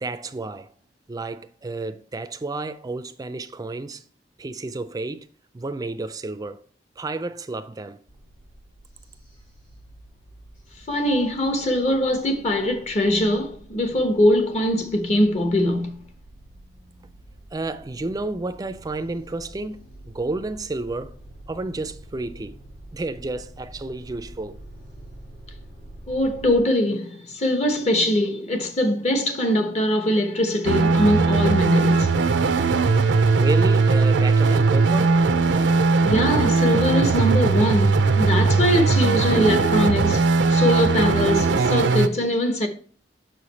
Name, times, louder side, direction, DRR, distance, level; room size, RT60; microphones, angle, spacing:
voice 1, 0.0-0.7 1.1-4.0 4.4-5.3 5.5-6.6 7.0-8.0 16.7-17.1 17.5-21.2 21.5-22.6 22.9-24.6 33.3-35.2, right 2 dB, 20° right, 0.4 m, -31 dB
sound 1, 8.1-26.6, right 1 dB, 85° left, 3.4 m, -47 dB
voice 2, 10.9-16.0 26.1-32.1 36.0-42.7, left 1 dB, 40° left, 0.9 m, -22 dB
sound 2, 30.6-42.1, right 4 dB, 80° right, 0.5 m, -19 dB
6.2 x 4.9 x 4.1 m
head